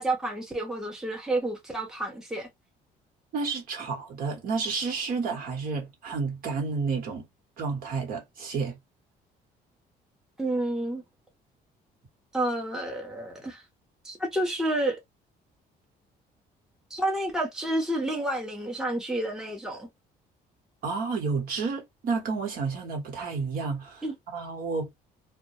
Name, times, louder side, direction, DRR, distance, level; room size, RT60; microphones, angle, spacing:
voice 1, 0.0-2.5 10.4-11.0 12.3-13.6 14.0-15.0 16.9-19.9 24.0-24.1, right 1 dB, 5° right, 0.7 m, -29 dB
voice 2, 3.3-7.2 7.6-8.8 20.8-24.0 24.3-24.9, right 4 dB, 60° right, 1.1 m, -30 dB
2.2 x 2.1 x 2.8 m
cardioid pair, 110°, 17 cm